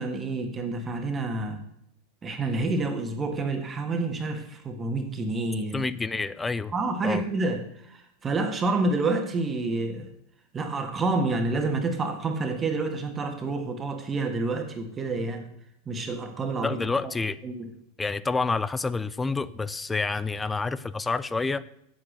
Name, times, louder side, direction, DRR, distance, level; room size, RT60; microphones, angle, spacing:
voice 1, 0.0-1.6 2.2-5.8 6.7-10.1 10.5-15.5 15.8-17.1 17.4-17.7, right 3 dB, 25° right, 5 dB, 1.5 m, -28 dB
voice 2, 5.7-6.7 7.0-7.2 16.6-17.4 18.0-21.6, left 4 dB, 15° left, 16 dB, 0.5 m, -28 dB
8.2 x 7.9 x 6.5 m, 0.75 s
hypercardioid pair, 90°, 0 cm